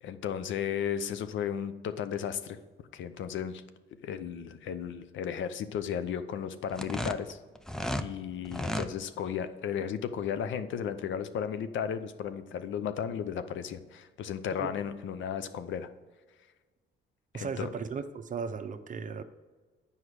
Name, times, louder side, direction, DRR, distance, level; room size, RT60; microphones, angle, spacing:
voice 1, 0.0-2.6 2.9-3.6 4.0-7.4 8.0-15.9 17.3-17.7, left 8 dB, 75° left, 11 dB, 0.6 m, -34 dB
sound 1, 6.7-8.1 8.4-8.9, equal, 5° left, 0.5 m, -33 dB
voice 2, 17.3-19.2, right 5 dB, 40° right, 9 dB, 0.6 m, -36 dB
8.0 x 5.5 x 4.8 m, 1.4 s
cardioid pair, 90°, 20 cm